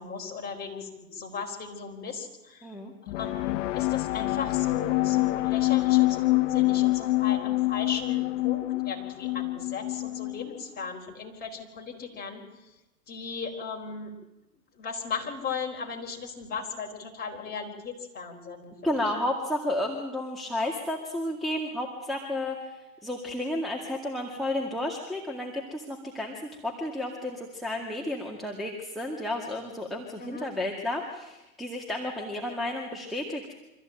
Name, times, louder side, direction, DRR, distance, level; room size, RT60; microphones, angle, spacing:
voice 1, 0.0-2.7 3.2-12.4 13.1-14.1 14.7-19.0 30.2-30.5, left 5 dB, 20° left, 1 dB, 4.4 m, -37 dB
voice 2, 2.6-2.9 18.8-33.5, left 1 dB, ahead, 2 dB, 2.1 m, -32 dB
sound 1, 3.1-10.6, left 19 dB, 50° left, 0.7 m, -26 dB
25.0 x 14.5 x 9.0 m, 0.99 s
hypercardioid pair, 125°, 47 cm